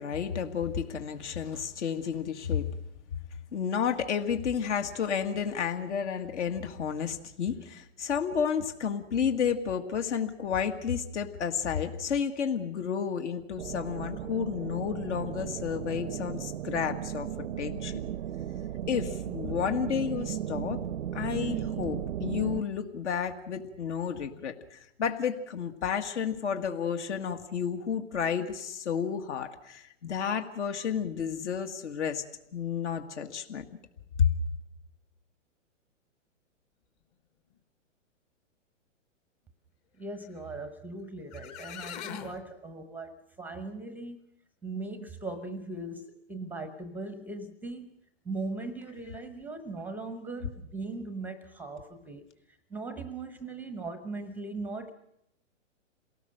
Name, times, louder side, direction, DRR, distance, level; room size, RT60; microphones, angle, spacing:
voice 1, 0.0-2.7 3.5-17.3 17.6-18.0 18.9-20.8 21.1-32.2 32.5-33.6 34.2-34.3, left 7 dB, 65° left, 6 dB, 2.1 m, -31 dB
sound 1, 13.6-22.6, right 10 dB, 75° right, 0.8 m, -35 dB
voice 2, 40.0-44.2 44.6-48.0 48.2-54.9, right 3 dB, 5° right, 10 dB, 0.8 m, -39 dB
sound 2, 41.0-41.1 41.3-42.4, left 10 dB, 35° left, 1.4 m, -41 dB
27.5 x 18.5 x 6.5 m, 0.78 s
hypercardioid pair, 145°, 38 cm